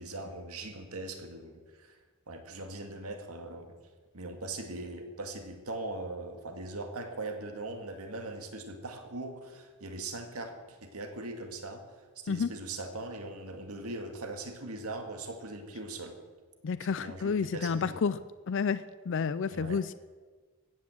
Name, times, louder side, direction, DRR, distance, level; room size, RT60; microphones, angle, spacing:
voice 1, 0.0-3.7 4.1-16.2 16.8-18.0 19.5-19.8, right 2 dB, 85° right, 5 dB, 2.0 m, -40 dB
voice 2, 16.6-18.2 18.5-19.9, left 5 dB, 55° left, 14 dB, 0.4 m, -30 dB
16.0 x 9.7 x 7.8 m, 1.4 s
head